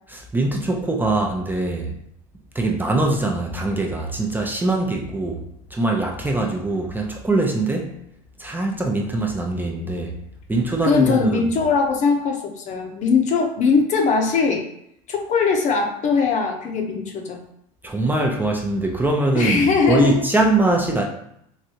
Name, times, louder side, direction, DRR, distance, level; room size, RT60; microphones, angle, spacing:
voice 1, 0.1-2.0 2.5-5.4 5.7-7.9 8.4-10.1 10.5-11.5 17.8-21.0, right 2 dB, 10° right, 0 dB, 0.6 m, -22 dB
voice 2, 10.8-14.7 15.1-17.4 19.3-20.2, left 5 dB, 45° left, 2 dB, 0.7 m, -20 dB
3.2 x 2.6 x 2.8 m, 0.75 s
hypercardioid pair, 80°, 17 cm